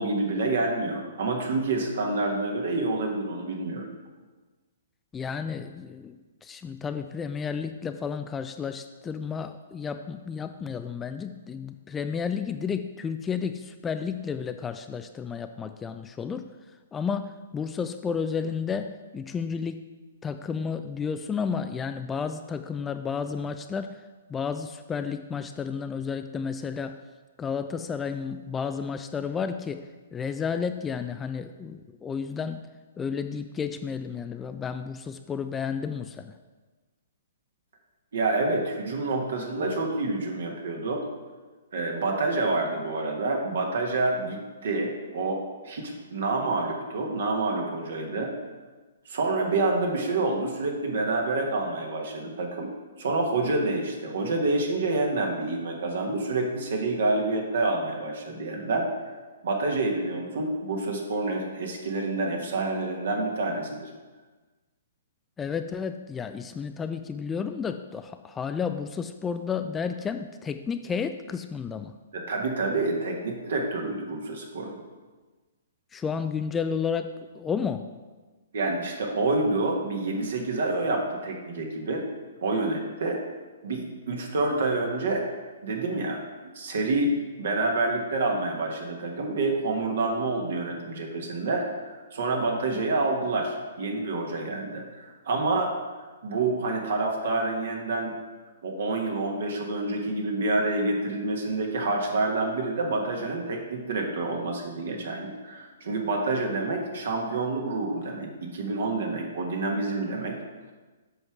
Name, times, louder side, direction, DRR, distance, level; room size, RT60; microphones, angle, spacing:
voice 1, 0.0-3.9 38.1-41.0 41.7-48.3 49.0-52.7 53.0-58.9 59.4-63.9 72.1-74.8 78.5-82.0 82.4-83.2 83.6-85.2 85.6-86.2 86.5-87.1 87.4-95.7 96.2-98.1 98.6-110.4, right 2 dB, 60° right, 1 dB, 1.4 m, -28 dB
voice 2, 5.1-16.5 16.9-19.8 20.2-24.0 24.3-27.0 27.4-32.7 33.0-36.4 65.4-72.0 75.9-77.9, left 6 dB, 15° left, 9 dB, 0.3 m, -32 dB
7.8 x 5.7 x 4.8 m, 1.3 s
figure-of-eight pair, 120°, 0 cm